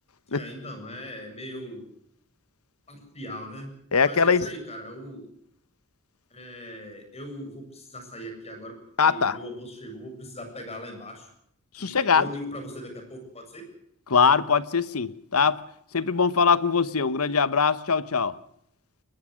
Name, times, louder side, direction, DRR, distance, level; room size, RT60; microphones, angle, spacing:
voice 1, 0.3-1.9 2.9-3.7 4.0-5.3 6.3-8.8 9.0-11.3 11.8-13.6, equal, 30° left, 7.5 m, -39 dB
voice 2, 3.9-4.5 9.0-9.4 11.8-12.3 14.1-15.6 15.9-18.4, left 5 dB, 85° left, 1.1 m, -22 dB
22.0 x 21.0 x 6.5 m
head